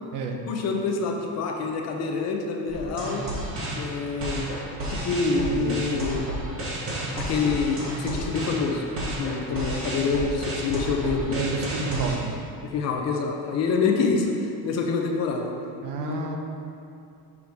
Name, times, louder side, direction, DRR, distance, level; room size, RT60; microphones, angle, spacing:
voice 1, 0.5-3.2 3.7-6.3 7.1-8.9 9.2-11.4 12.6-15.5 16.0-16.4, left 4 dB, 45° left, 2 dB, 0.7 m, -26 dB
sound 1, 2.7-12.1, right 1 dB, 35° right, 1.4 m, -32 dB
voice 2, 5.4-5.8 11.3-12.4 15.8-16.4, right 3 dB, 60° right, 2 dB, 0.8 m, -29 dB
6.5 x 6.1 x 3.6 m, 2.5 s
cardioid pair, 165°, 37 cm